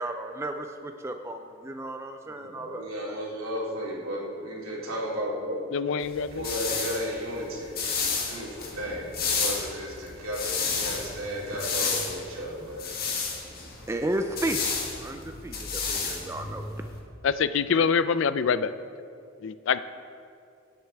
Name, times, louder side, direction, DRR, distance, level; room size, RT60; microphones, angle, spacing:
voice 1, 0.0-3.1 13.9-14.6 15.0-16.8, right 1 dB, 15° right, 5 dB, 0.3 m, -33 dB
voice 2, 2.2-5.6 6.3-12.9, equal, 80° right, -4 dB, 2.6 m, -34 dB
voice 3, 5.7-6.5 17.2-18.7 19.4-19.8, left 6 dB, 60° left, 13 dB, 0.4 m, -25 dB
sound 1, 6.0-17.0, left 5 dB, 45° left, 1.6 m, -32 dB
17.5 x 7.9 x 3.4 m, 2.5 s
head